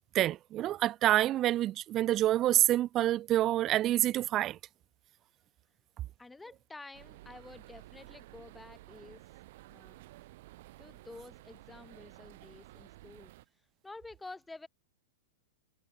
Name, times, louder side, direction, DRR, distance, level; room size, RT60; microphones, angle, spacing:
voice 1, 0.1-4.6, right 13 dB, 30° right, 0.4 m, -27 dB
voice 2, 6.2-9.2 9.7-10.0 10.8-13.3 13.8-14.7, left 3 dB, 5° left, 5.7 m, -50 dB
sound 1, 6.9-13.4, right 18 dB, 60° right, 6.1 m, -53 dB
hypercardioid pair, 130°, 0 cm